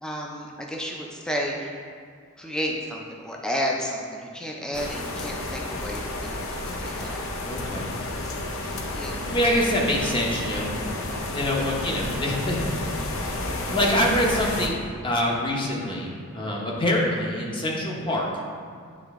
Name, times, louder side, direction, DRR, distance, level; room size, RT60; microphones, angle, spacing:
voice 1, 0.0-1.8 2.4-7.2 8.2-8.5 8.8-9.3 14.0-14.2, equal, 5° left, -1 dB, 0.5 m, -32 dB
sound 1, 4.7-14.7, left 2 dB, 65° left, 0.6 m, -31 dB
voice 2, 7.4-7.9 9.0-10.7 11.3-12.6 13.7-18.3, left 1 dB, 20° left, -2 dB, 0.9 m, -25 dB
9.5 x 3.3 x 3.6 m, 2.1 s
head